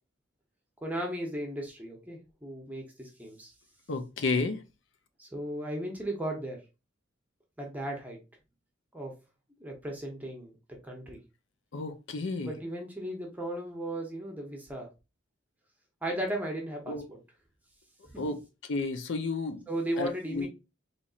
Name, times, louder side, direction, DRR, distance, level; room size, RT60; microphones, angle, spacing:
voice 1, 0.8-3.5 5.2-6.6 7.6-8.2 8.9-9.1 9.6-10.6 10.8-11.2 12.5-14.9 16.0-17.2 19.7-20.5, right 1 dB, 10° right, 0.7 m, -36 dB
voice 2, 3.9-4.6 11.7-12.5 16.9-17.0 18.2-19.6 20.0-20.5, left 3 dB, 65° left, 0.6 m, -32 dB
4.1 x 3.1 x 2.4 m
head